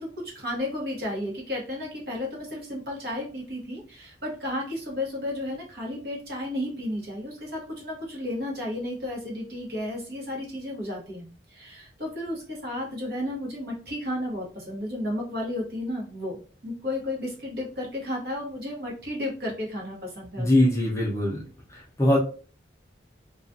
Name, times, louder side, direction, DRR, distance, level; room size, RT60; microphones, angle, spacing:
voice 1, 0.0-20.7, left 1 dB, 60° right, -2 dB, 1.0 m, -33 dB
voice 2, 20.4-21.4 22.0-22.2, left 1 dB, 15° left, -3 dB, 0.5 m, -21 dB
2.3 x 2.3 x 2.6 m, 0.39 s
head